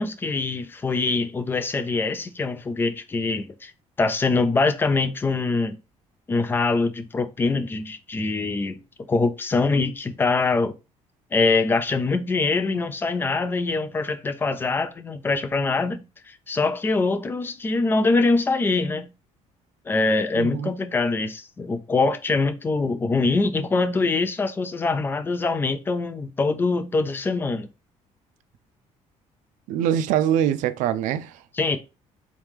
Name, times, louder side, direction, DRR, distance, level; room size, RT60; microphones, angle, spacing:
voice 1, 0.0-3.7 4.0-5.8 6.3-8.8 9.1-10.8 11.3-19.1 19.9-27.7 31.5-31.8, left 3 dB, 15° left, 0.4 m, -23 dB
voice 2, 20.3-20.7 29.7-31.4, right 10 dB, 85° right, 0.4 m, -23 dB
3.7 x 3.1 x 3.5 m
cardioid pair, 160°, 13 cm